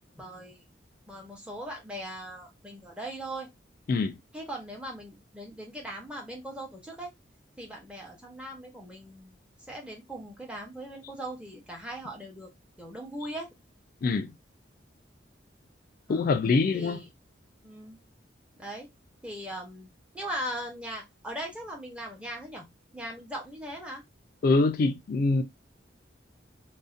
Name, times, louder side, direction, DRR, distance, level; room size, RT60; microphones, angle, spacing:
voice 1, 0.1-0.6 1.1-3.5 4.3-7.1 7.6-9.4 9.7-12.5 12.8-13.5 16.1-16.3 16.7-17.1 17.6-18.0 18.6-18.9 19.2-22.7 22.9-24.0, right 1 dB, 5° right, 0.7 m, -39 dB
voice 2, 14.0-14.3 16.1-17.0 24.4-25.4, left 3 dB, 50° left, 0.3 m, -24 dB
2.5 x 2.1 x 2.4 m
head